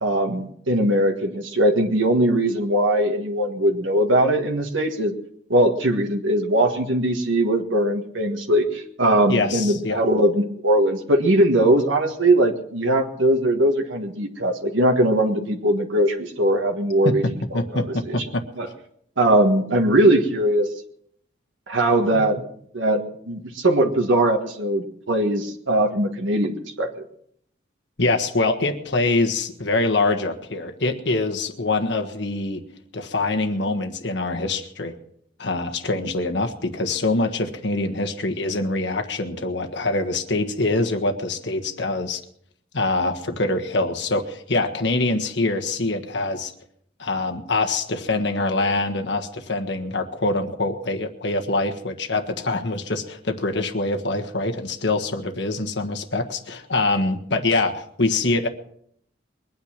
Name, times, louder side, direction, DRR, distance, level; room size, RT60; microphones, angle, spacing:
voice 1, 0.0-5.1 5.5-17.2 17.7-18.2 18.6-18.7 19.2-20.7 21.7-22.4 22.7-23.0 23.3-26.9, right 1 dB, 85° right, 2 dB, 1.6 m, -20 dB
voice 2, 9.3-10.0 17.0-17.1 17.5-18.4 22.1-22.2 28.0-32.6 32.9-34.9 35.4-42.2 42.7-46.5 47.0-58.5, left 2 dB, 65° left, 4 dB, 1.5 m, -24 dB
22.0 x 9.4 x 6.0 m, 0.68 s
head